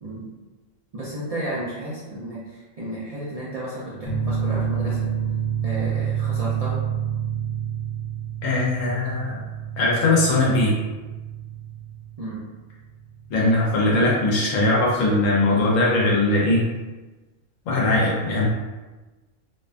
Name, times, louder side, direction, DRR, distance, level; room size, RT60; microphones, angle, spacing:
voice 1, 0.9-5.1 5.6-6.8 12.2-12.4, right 1 dB, 65° right, -9 dB, 0.3 m, -33 dB
sound 1, 4.0-15.2, right 8 dB, 60° left, 1.1 m, -29 dB
voice 2, 8.4-9.4 9.8-10.7 13.3-16.6 17.7-18.4, left 2 dB, 85° left, -4 dB, 1.0 m, -20 dB
2.6 x 2.2 x 2.4 m, 1.2 s
omnidirectional pair, 1.3 m